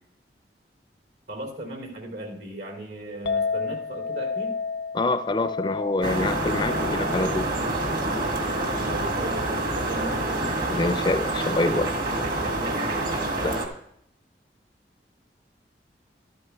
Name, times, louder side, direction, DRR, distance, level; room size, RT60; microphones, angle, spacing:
voice 1, 1.3-4.5 8.8-10.5 12.3-13.1, right 1 dB, 75° right, 2 dB, 3.0 m, -37 dB
Chink clink, 3.3-9.5, left 5 dB, 75° left, 0.5 m, -33 dB
voice 2, 4.9-7.5 10.7-11.9 13.4-13.6, left 2 dB, 25° left, 11 dB, 0.4 m, -26 dB
sound 1, 6.0-13.7, right 2 dB, 55° right, 1.8 m, -27 dB
13.0 x 12.5 x 2.3 m, 0.72 s
head